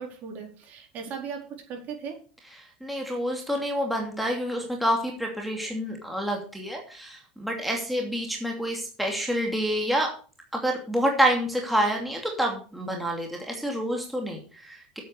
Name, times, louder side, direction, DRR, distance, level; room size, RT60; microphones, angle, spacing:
voice 1, 0.0-2.2, right 6 dB, 45° right, 1 dB, 4.4 m, -37 dB
voice 2, 2.5-10.1 10.5-15.0, equal, ahead, 0 dB, 2.7 m, -28 dB
8.7 x 8.4 x 6.8 m, 0.40 s
supercardioid pair, 125°, 4 cm